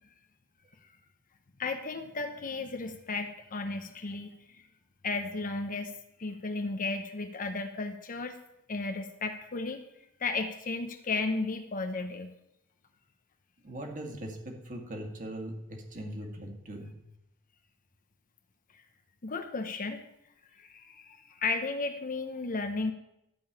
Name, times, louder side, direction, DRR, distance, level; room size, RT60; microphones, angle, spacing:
voice 1, 1.6-4.6 5.0-5.9 6.2-8.3 8.7-9.8 10.2-12.3 19.2-20.1 20.6-22.9, left 3 dB, 40° left, 7 dB, 0.8 m, -34 dB
voice 2, 13.6-16.9, right 1 dB, 40° right, 2 dB, 2.2 m, -40 dB
12.5 x 5.4 x 8.8 m, 0.84 s
head